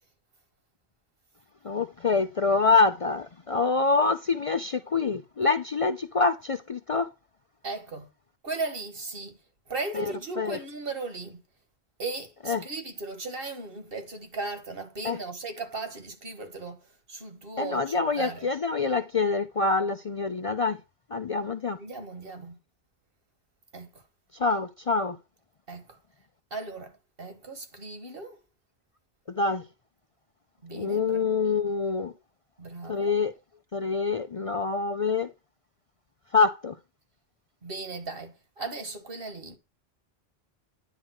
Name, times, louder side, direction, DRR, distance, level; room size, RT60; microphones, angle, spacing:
voice 1, 1.6-7.1 9.9-10.6 12.4-12.6 15.0-15.2 17.6-20.8 21.1-21.8 24.3-25.2 29.3-29.7 30.7-32.1 32.8-33.3 33.7-35.3 36.3-36.8, left 4 dB, 45° left, 0.5 m, -26 dB
voice 2, 7.6-8.1 8.4-9.4 9.7-11.4 12.0-18.5 21.8-22.6 23.7-23.9 25.7-26.0 26.5-26.9 27.2-28.4 30.6-31.2 32.6-33.1 37.6-39.6, right 3 dB, 65° right, 1.9 m, -37 dB
10.0 x 3.6 x 6.3 m
omnidirectional pair, 1.0 m